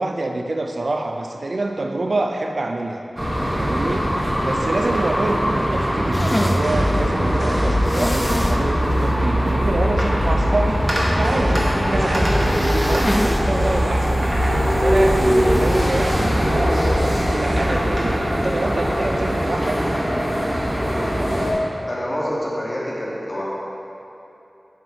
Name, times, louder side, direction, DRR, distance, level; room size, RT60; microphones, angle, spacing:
voice 1, 0.0-3.0 3.6-10.9 11.2-14.3 14.6-19.8, right 2 dB, 65° right, 4 dB, 0.3 m, -26 dB
sound 1, 3.2-21.5, equal, 25° right, 1.1 m, -22 dB
sound 2, 5.7-20.3, equal, 65° left, 1.5 m, -24 dB
sound 3, 6.1-6.6 7.8-8.6 9.0-9.1 9.5-9.6 12.2-13.4 13.8-13.9 15.5-15.8, left 1 dB, 15° left, 0.4 m, -27 dB
voice 2, 21.9-23.4, equal, 30° left, -5 dB, 1.2 m, -27 dB
7.4 x 5.1 x 2.7 m, 2.8 s
wide cardioid pair, 75°, 0 cm